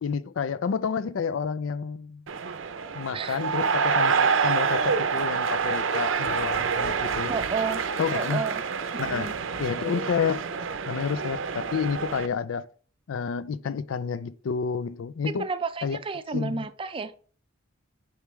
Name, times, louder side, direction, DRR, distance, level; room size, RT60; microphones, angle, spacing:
voice 1, 0.0-2.2 2.9-7.3 8.0-8.4 9.0-9.3 9.6-10.4 10.9-12.7 13.1-15.5 15.8-16.0 16.3-16.6, left 6 dB, 80° left, 0.4 m, -29 dB
sound 1, 2.3-12.3, right 5 dB, 80° right, 0.6 m, -27 dB
voice 2, 7.2-7.8 8.1-8.5 8.9-9.4 15.3-17.1, right 4 dB, 25° right, 0.4 m, -31 dB
6.8 x 4.7 x 3.1 m
head